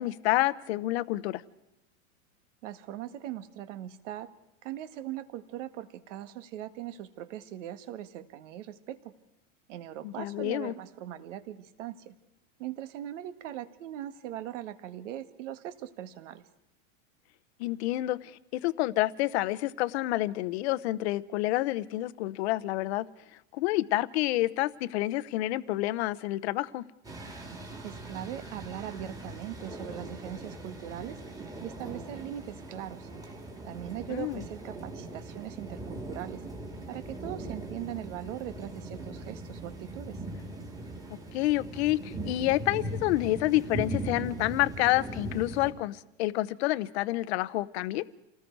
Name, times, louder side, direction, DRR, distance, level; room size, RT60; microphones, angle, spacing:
voice 1, 0.0-1.4 10.0-10.7 17.6-23.0 23.5-26.8 34.1-34.4 41.3-48.0, left 17 dB, 55° left, 15 dB, 0.9 m, -28 dB
voice 2, 2.6-4.3 4.6-9.1 9.7-12.1 12.6-16.4 27.8-31.2 31.6-33.1 33.6-36.4 36.9-40.2, right 12 dB, 65° right, 11 dB, 1.8 m, -40 dB
sound 1, 27.0-45.7, right 1 dB, 10° right, 2.7 m, -40 dB
29.0 x 19.0 x 4.7 m, 0.89 s
supercardioid pair, 170°, 40 cm